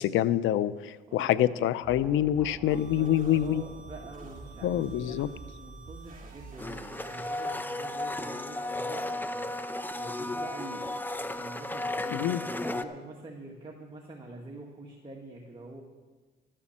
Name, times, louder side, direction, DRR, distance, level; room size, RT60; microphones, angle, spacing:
voice 1, 0.0-3.6 4.6-5.3 12.1-12.4, left 11 dB, 85° left, 17 dB, 0.6 m, -26 dB
voice 2, 1.1-1.5 2.7-15.8, right 2 dB, 25° right, -2 dB, 2.0 m, -46 dB
sound 1, 1.8-7.3, right 2 dB, 5° right, 1.8 m, -47 dB
sound 2, 2.7-8.4, right 5 dB, 45° right, 3.6 m, -53 dB
Domestic sounds home sounds, 6.6-12.8, left 2 dB, 10° left, 0.7 m, -34 dB
13.0 x 9.9 x 7.4 m, 1.3 s
cardioid pair, 90°, 20 cm